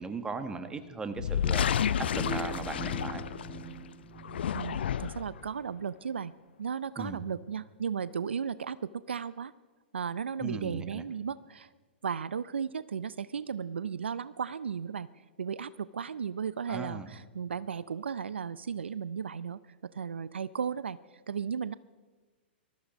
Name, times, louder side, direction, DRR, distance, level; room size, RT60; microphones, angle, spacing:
voice 1, 0.0-1.7 2.0-3.3 7.0-7.2 10.4-11.0 16.7-17.1, right 4 dB, 15° right, 9 dB, 1.4 m, -38 dB
sound 1, 1.1-3.7 4.2-5.4, left 8 dB, 65° left, 0.6 m, -30 dB
sound 2, 2.1-4.9, right 3 dB, 5° left, 4.5 m, -42 dB
voice 2, 4.5-6.3 6.6-9.5 9.9-11.7 12.0-21.0 21.3-21.7, right 7 dB, 80° right, 17 dB, 0.4 m, -35 dB
20.0 x 13.5 x 5.2 m, 1.4 s
figure-of-eight pair, 110°, 6 cm